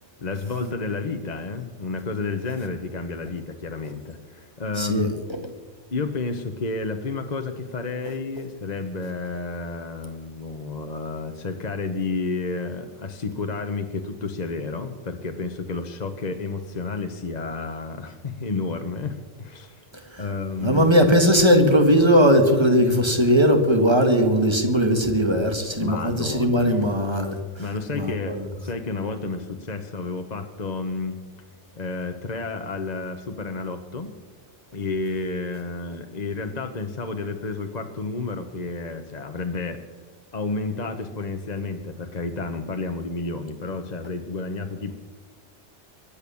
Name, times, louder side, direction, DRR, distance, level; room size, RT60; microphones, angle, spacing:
voice 1, 0.2-5.1 5.9-19.8 20.2-20.9 25.8-26.9 27.6-31.2 31.7-34.1 34.7-39.8 40.3-44.9, left 3 dB, 40° left, 6 dB, 1.1 m, -31 dB
voice 2, 4.8-5.1 20.1-20.2 20.6-27.4 28.0-28.5, equal, 25° right, 5 dB, 1.9 m, -19 dB
23.0 x 8.6 x 7.1 m, 1.3 s
omnidirectional pair, 1.2 m